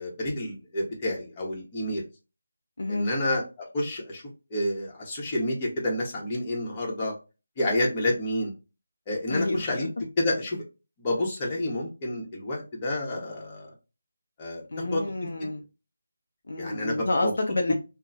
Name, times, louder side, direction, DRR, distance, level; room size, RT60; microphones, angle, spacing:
voice 1, 0.0-2.0 2.9-4.2 4.5-7.1 7.6-8.5 9.1-9.9 10.2-10.6 11.0-13.7 14.4-15.0 16.6-17.3, left 1 dB, 25° left, 0.9 m, -29 dB
voice 2, 2.8-3.1 9.3-9.7 14.7-15.6 16.5-17.7, left 2 dB, 65° left, 0.5 m, -29 dB
3.0 x 2.1 x 2.5 m
figure-of-eight pair, 160°, 0 cm